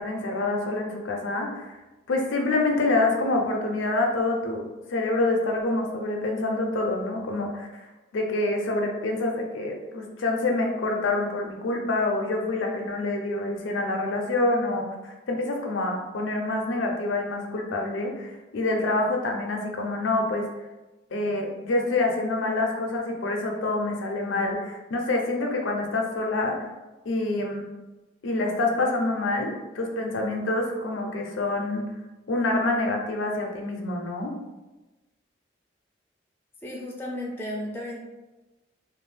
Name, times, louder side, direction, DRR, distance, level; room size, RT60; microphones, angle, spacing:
voice 1, 0.0-1.8 2.1-7.9 8.1-20.4 21.1-26.5 27.1-27.6 28.2-31.8 32.3-34.3, left 2 dB, 90° left, 1 dB, 0.5 m, -26 dB
voice 2, 36.6-38.0, left 1 dB, 10° left, -2 dB, 0.3 m, -34 dB
2.6 x 2.0 x 3.2 m, 1.1 s
head